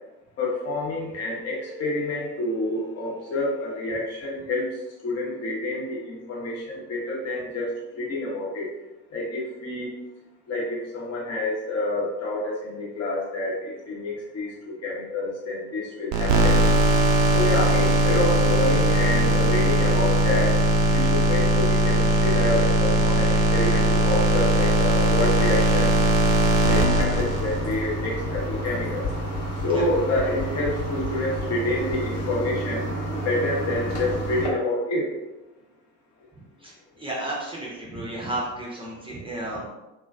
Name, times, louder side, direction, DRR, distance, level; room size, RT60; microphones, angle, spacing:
voice 1, 0.4-4.7 5.0-8.7 9.1-9.9 10.5-16.6 17.3-20.6 20.9-25.9 26.7-29.0 29.6-32.9 33.2-35.1, left 2 dB, 35° left, -4 dB, 1.0 m, -28 dB
sound 1, 16.1-27.8, right 1 dB, 50° right, 0.5 m, -20 dB
sound 2, 27.1-34.5, equal, 60° left, 1.2 m, -30 dB
voice 2, 37.0-39.6, right 1 dB, 10° right, -4 dB, 0.7 m, -32 dB
3.0 x 2.2 x 2.4 m, 1.0 s
figure-of-eight pair, 55°, 45 cm